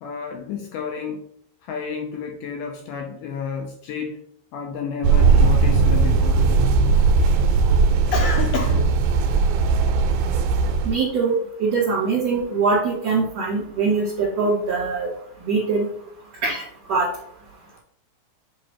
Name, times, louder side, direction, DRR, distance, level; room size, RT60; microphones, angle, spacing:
voice 1, 0.0-1.2 1.6-4.2 4.5-6.4 8.1-9.0, left 5 dB, 80° left, 3 dB, 1.9 m, -30 dB
sound 1, 5.0-11.0, right 4 dB, 85° right, 2.5 m, -18 dB
voice 2, 10.8-15.1 15.4-15.9 16.4-16.6 16.9-17.1, right 4 dB, 50° right, -9 dB, 2.7 m, -22 dB
7.8 x 3.2 x 4.4 m, 0.68 s
omnidirectional pair, 4.6 m